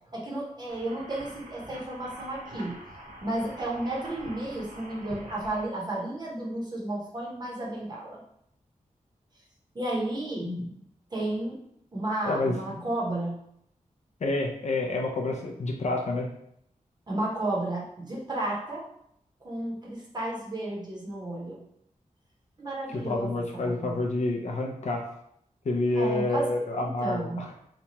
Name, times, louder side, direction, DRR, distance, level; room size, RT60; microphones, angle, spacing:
voice 1, 0.1-2.7 3.2-8.2 9.7-10.5 11.1-11.6 11.9-13.4 17.1-18.8 19.4-21.6 22.6-24.0 25.9-26.4 26.8-27.4, right 1 dB, 30° right, -4 dB, 0.8 m, -32 dB
sound 1, 0.7-5.7, right 1 dB, 85° right, 0.6 m, -45 dB
voice 2, 12.2-12.9 14.2-16.3 22.9-25.0 25.6-27.5, left 2 dB, 55° left, 0 dB, 0.5 m, -28 dB
2.8 x 2.2 x 2.8 m, 0.72 s
wide cardioid pair, 125°, 14 cm